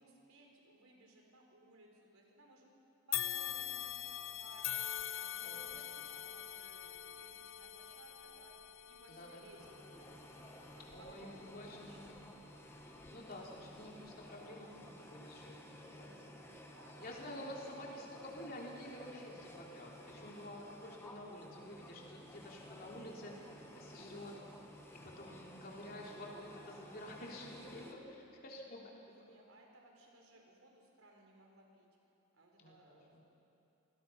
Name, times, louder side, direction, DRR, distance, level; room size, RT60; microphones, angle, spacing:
voice 1, 0.0-2.7 3.1-4.8 5.1-8.5 8.9-9.7 10.0-10.7 11.0-12.0 16.4-18.0 29.0-31.9 32.3-33.2, right 2 dB, 85° right, 0 dB, 4.3 m, -62 dB
sound 1, 3.1-12.4 12.9-13.1 14.1-14.2, left 12 dB, 75° left, 0.9 m, -44 dB
voice 2, 5.4-6.2 9.1-9.4 10.9-12.0 13.1-14.7 15.0-16.1 17.0-23.5 23.7-24.3 24.9-28.8 32.6-33.2, left 1 dB, 45° left, -2 dB, 3.4 m, -50 dB
sound 2, 9.6-27.9, left 1 dB, 10° left, 1.5 m, -55 dB
sound 3, 12.0-28.1, right 1 dB, 50° right, 4.0 m, -65 dB
27.0 x 19.5 x 5.8 m, 2.8 s
head